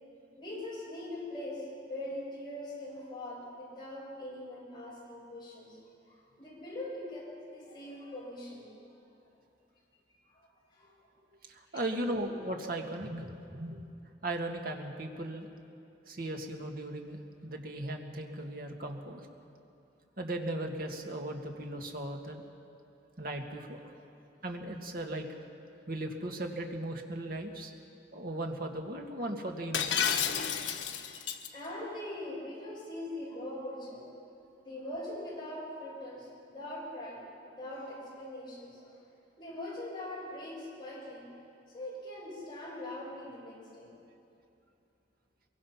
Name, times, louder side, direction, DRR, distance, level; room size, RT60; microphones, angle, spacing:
voice 1, 0.4-5.8 6.1-8.7 10.1-11.1 31.5-34.1 34.6-38.9 39.4-41.3 41.7-44.0, left 1 dB, 25° left, -5 dB, 7.2 m, -42 dB
voice 2, 11.5-13.8 14.2-15.5 16.1-19.3 20.2-22.4 23.2-23.8 24.4-25.3 25.9-27.7 28.1-30.1, right 1 dB, 50° right, 2 dB, 2.1 m, -37 dB
Shatter, 29.7-31.5, left 8 dB, 85° left, 1.2 m, -31 dB
23.0 x 23.0 x 5.9 m, 2.6 s
head